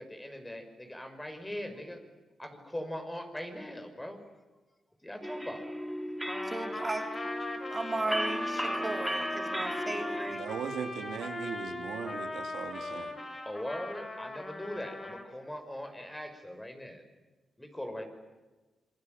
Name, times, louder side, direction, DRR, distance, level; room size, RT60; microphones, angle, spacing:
voice 1, 0.0-2.0 2.4-4.2 5.0-5.6 13.5-17.0 17.6-18.0, left 1 dB, 10° left, 7 dB, 5.9 m, -40 dB
sound 1, 5.2-10.3, equal, 5° right, 2.5 m, -36 dB
Trumpet, 6.3-15.3, left 2 dB, 30° left, 4.8 m, -39 dB
voice 2, 6.4-7.1 7.7-10.4, right 2 dB, 25° right, 5 dB, 3.2 m, -35 dB
voice 3, 10.3-13.1, right 7 dB, 85° right, 6 dB, 2.5 m, -38 dB
27.5 x 23.5 x 9.3 m, 1.2 s
cardioid pair, 80°, 0 cm